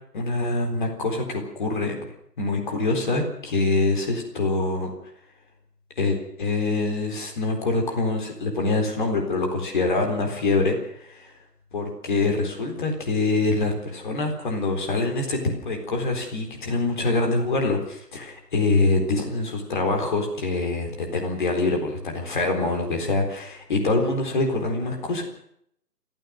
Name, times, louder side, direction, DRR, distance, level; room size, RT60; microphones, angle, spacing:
voice 1, 0.1-1.9 2.4-4.9 6.0-11.3 11.7-25.2, left 3 dB, 30° left, 3 dB, 4.1 m, -25 dB
28.5 x 14.5 x 6.5 m, 0.70 s
figure-of-eight pair, 155°, 48 cm